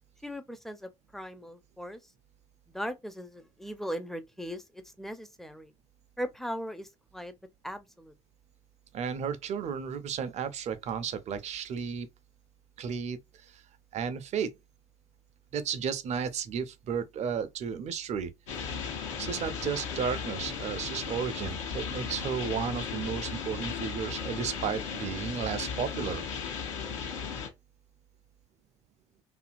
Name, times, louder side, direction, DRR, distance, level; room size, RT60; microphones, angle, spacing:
voice 1, 0.2-2.0 2.7-5.7 6.2-7.3 7.6-8.1, equal, ahead, 0.5 m, -39 dB
voice 2, 8.9-12.1 12.8-13.6 13.9-14.5 15.5-18.3 19.2-26.3, right 7 dB, 45° right, 0.6 m, -33 dB
sound 1, 18.5-27.5, left 6 dB, 80° left, 0.9 m, -36 dB
2.7 x 2.5 x 2.5 m
figure-of-eight pair, 55°, 16 cm